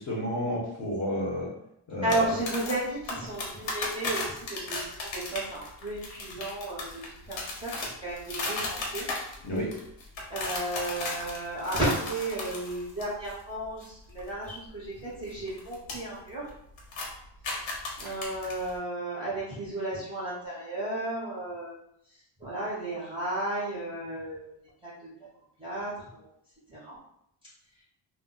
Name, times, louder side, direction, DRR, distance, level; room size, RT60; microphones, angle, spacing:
voice 1, 0.0-1.5 1.9-2.2 9.4-9.7, equal, 30° left, -5 dB, 0.6 m, -31 dB
voice 2, 2.0-7.0 7.3-9.1 10.3-16.5 18.0-21.7 22.4-24.5 24.8-24.9 25.6-26.3 26.7-27.0, right 1 dB, 10° right, -9 dB, 0.5 m, -33 dB
sound 1, 2.1-13.4 13.6-13.9 14.1-15.9 16.3-16.5 16.8-18.8, left 3 dB, 90° left, 0.9 m, -35 dB
2.2 x 2.0 x 3.7 m, 0.76 s
cardioid pair, 180°, 45 cm